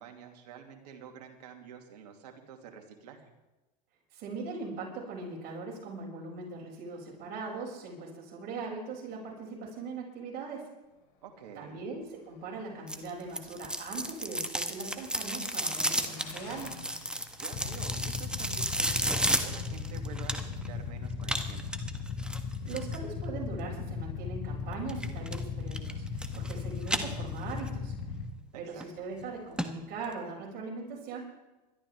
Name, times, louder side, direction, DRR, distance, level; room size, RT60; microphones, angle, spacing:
voice 1, 0.0-3.3 11.2-11.9 17.4-21.6 28.5-28.9, right 7 dB, 75° right, 3 dB, 2.7 m, -48 dB
voice 2, 4.1-10.7 11.5-16.9 22.6-27.9 28.5-31.2, right 4 dB, 50° right, -2 dB, 6.8 m, -40 dB
Motorcycle, 10.8-19.1, left 7 dB, 70° left, 3.5 m, -55 dB
sound 1, 12.9-20.7 21.2-23.0 24.9-25.4 25.7-26.5 26.8-27.7 28.1-28.2 28.8-28.9 29.2-29.3 29.6-29.7 30.0-30.1, right 1 dB, 5° right, 1.5 m, -33 dB
Motorcycle / Idling, 17.5-28.2, left 5 dB, 55° left, 2.0 m, -37 dB
21.5 x 13.5 x 3.6 m, 1.1 s
hypercardioid pair, 85°, 21 cm